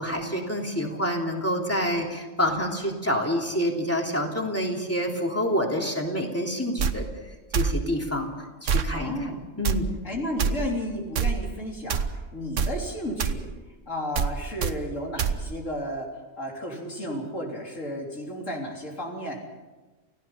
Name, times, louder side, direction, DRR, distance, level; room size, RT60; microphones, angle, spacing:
voice 1, 0.0-7.1 7.5-8.3 8.6-9.9, equal, 10° left, 0 dB, 3.2 m, -27 dB
sound 1, 6.8-6.9 7.5-7.8 8.7-8.9 9.6-9.8 10.4-10.5 11.2-11.4 11.9-12.1 12.6-12.7 13.2-13.4 14.2-14.3 14.6-14.7 15.2-15.4, right 6 dB, 75° right, 1.3 m, -24 dB
voice 2, 8.9-9.4 10.0-13.5 13.9-16.1 16.4-19.4, equal, 75° left, -1 dB, 4.1 m, -33 dB
29.0 x 16.5 x 5.7 m, 1.2 s
omnidirectional pair, 1.3 m